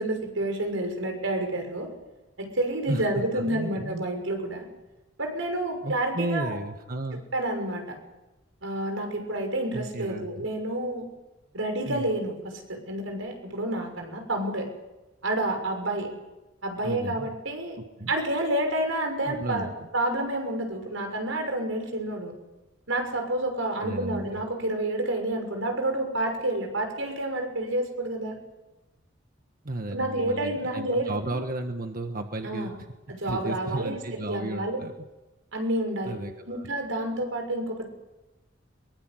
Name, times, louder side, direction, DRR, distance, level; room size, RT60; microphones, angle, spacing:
voice 1, 0.0-1.9 2.4-4.7 5.2-6.6 7.3-8.0 8.6-11.1 11.5-14.7 15.2-16.1 16.6-17.8 18.1-22.3 22.9-28.4 29.9-31.4 32.4-32.8 33.1-34.8 35.5-36.2 36.5-37.9, right 1 dB, 85° right, 4 dB, 6.3 m, -29 dB
voice 2, 2.9-4.0 5.8-7.2 9.7-10.5 11.9-12.1 16.8-17.4 18.0-18.1 19.2-19.9 23.8-24.4 29.6-32.7 33.2-34.9 36.1-36.7, right 1 dB, 45° right, 5 dB, 1.5 m, -33 dB
23.0 x 22.5 x 7.9 m, 1.0 s
head